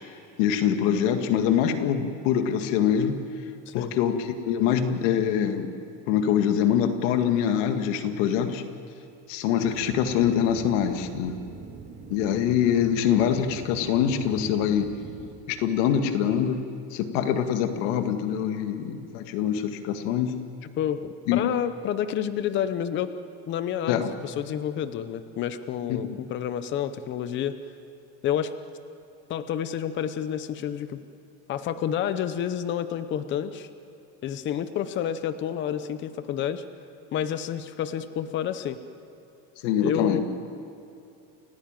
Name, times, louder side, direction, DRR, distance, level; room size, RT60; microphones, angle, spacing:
voice 1, 0.4-3.2 3.7-5.7 6.1-8.6 9.3-11.3 12.1-14.9 15.5-16.6 16.9-20.3 21.3-21.4 23.9-24.1 25.9-26.2 39.6-40.2, left 9 dB, 90° left, 7 dB, 2.1 m, -24 dB
sound 1, 9.6-15.3, right 5 dB, 30° right, 2.7 m, -42 dB
voice 2, 20.8-23.1 23.5-27.6 28.2-28.5 29.3-31.0 31.5-33.7 34.2-36.6 37.1-38.8 39.8-40.2, left 9 dB, 30° left, 12 dB, 0.8 m, -29 dB
29.5 x 16.0 x 9.0 m, 2.7 s
cardioid pair, 170°, 37 cm